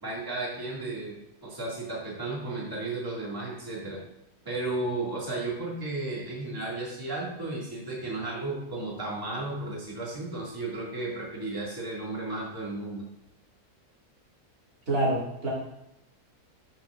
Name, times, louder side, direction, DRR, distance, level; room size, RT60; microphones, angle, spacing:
voice 1, 0.0-4.0 4.4-13.0, right 2 dB, 15° right, -5 dB, 2.1 m, -34 dB
voice 2, 14.9-15.5, right 1 dB, 75° right, -6 dB, 3.0 m, -26 dB
12.5 x 6.0 x 2.5 m, 0.82 s
omnidirectional pair, 1.6 m